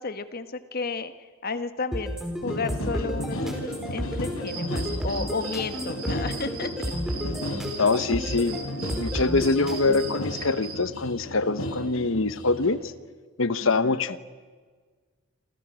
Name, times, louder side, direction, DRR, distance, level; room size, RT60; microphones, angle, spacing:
voice 1, 0.0-6.7 13.6-14.1, left 4 dB, 45° left, 10 dB, 1.4 m, -33 dB
sound 1, 1.9-10.2, equal, ahead, 4.5 m, -32 dB
sound 2, 2.4-12.8, left 1 dB, 90° left, 4.1 m, -35 dB
sound 3, 4.5-10.7, right 6 dB, 65° right, 5.9 m, -39 dB
voice 2, 7.8-8.6 9.0-12.8 13.4-14.2, left 3 dB, 65° left, 14 dB, 1.1 m, -24 dB
28.0 x 27.5 x 6.4 m, 1.5 s
head